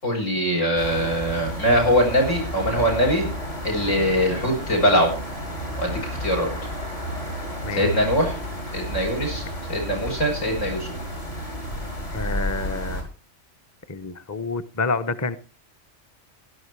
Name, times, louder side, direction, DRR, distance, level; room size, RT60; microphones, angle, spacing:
voice 1, 0.0-3.3 3.6-5.1 5.8-6.5 7.7-8.4 8.7-9.4 9.7-10.9, equal, 85° left, 2 dB, 7.6 m, -22 dB
sound 1, 0.8-13.0, equal, 60° left, 5.7 m, -31 dB
voice 2, 12.1-13.0 13.9-15.4, left 3 dB, 15° left, 11 dB, 0.7 m, -28 dB
17.0 x 12.0 x 4.7 m, 0.34 s
omnidirectional pair, 1.3 m